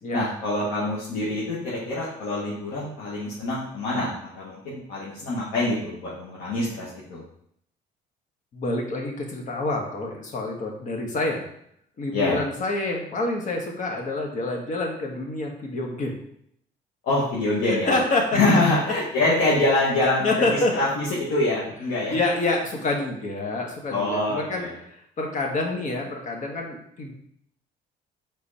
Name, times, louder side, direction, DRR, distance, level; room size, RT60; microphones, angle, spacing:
voice 1, 0.1-4.1 4.4-7.2 12.1-12.4 17.0-18.0 18.3-20.5 20.8-22.1 23.9-24.8, left 2 dB, 85° left, -7 dB, 1.8 m, -25 dB
voice 2, 8.5-11.5 12.0-16.2 17.6-18.4 20.0-20.7 22.1-27.1, left 2 dB, 50° left, 1 dB, 1.6 m, -27 dB
5.4 x 4.2 x 4.3 m, 0.69 s
cardioid pair, 110°, 17 cm